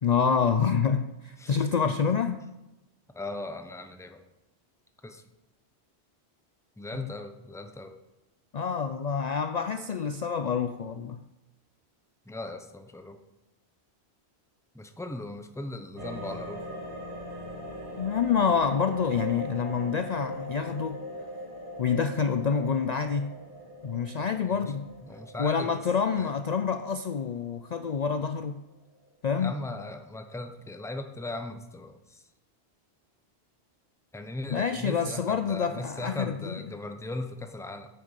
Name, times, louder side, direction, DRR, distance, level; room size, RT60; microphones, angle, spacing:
voice 1, 0.0-2.4 8.5-11.2 18.0-21.0 21.8-23.3 23.8-24.9 25.4-28.6 29.2-29.5 34.5-36.6, left 6 dB, 50° left, 9 dB, 0.6 m, -27 dB
voice 2, 1.4-1.9 3.1-4.2 5.0-5.2 6.8-8.0 12.3-13.2 14.7-16.6 24.4-24.7 25.0-25.8 26.1-26.3 29.4-32.2 34.1-37.9, left 2 dB, 5° left, 6 dB, 0.8 m, -38 dB
sound 1, 16.0-28.2 28.5-28.6, equal, 50° right, 2.5 m, -41 dB
9.0 x 6.7 x 8.2 m, 1.0 s
omnidirectional pair, 1.1 m